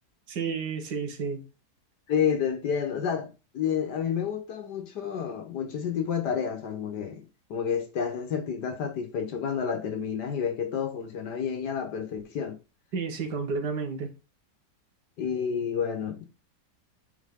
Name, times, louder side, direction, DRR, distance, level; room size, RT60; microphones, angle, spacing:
voice 1, 0.3-1.4 12.9-14.1, right 5 dB, 85° right, 1.9 m, -31 dB
voice 2, 2.1-12.6 15.2-16.3, left 7 dB, 80° left, 1.9 m, -30 dB
8.1 x 3.9 x 3.7 m
omnidirectional pair, 1.8 m